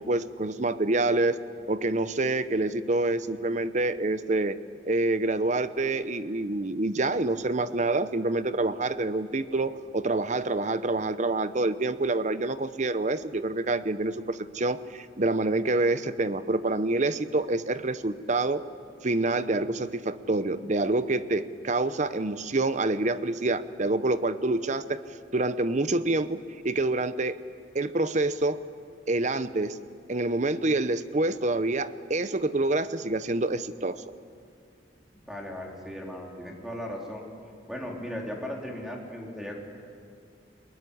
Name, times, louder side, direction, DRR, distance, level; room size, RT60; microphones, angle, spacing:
voice 1, 0.0-1.4 1.7-4.6 4.8-18.6 19.0-25.0 25.3-26.4 26.6-27.4 27.7-28.6 29.1-29.8 30.1-34.0, right 2 dB, 40° right, 13 dB, 0.8 m, -27 dB
voice 2, 35.2-37.2 37.7-39.6, equal, ahead, -1 dB, 3.6 m, -37 dB
23.0 x 21.0 x 9.9 m, 2.3 s
head